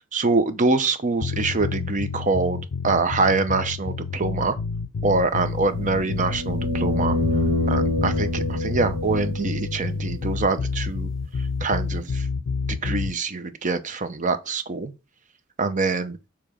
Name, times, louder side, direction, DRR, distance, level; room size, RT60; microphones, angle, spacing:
voice 1, 0.1-4.6 5.0-7.2 7.7-11.1 11.6-12.3 12.7-14.9 15.6-16.2, right 3 dB, 35° right, 0.7 m, -24 dB
sound 1, 1.2-13.2, left 4 dB, 80° left, 0.5 m, -29 dB
sound 2, 5.6-9.7 12.1-12.2, left 2 dB, 60° right, 1.8 m, -26 dB
6.9 x 3.0 x 5.0 m
head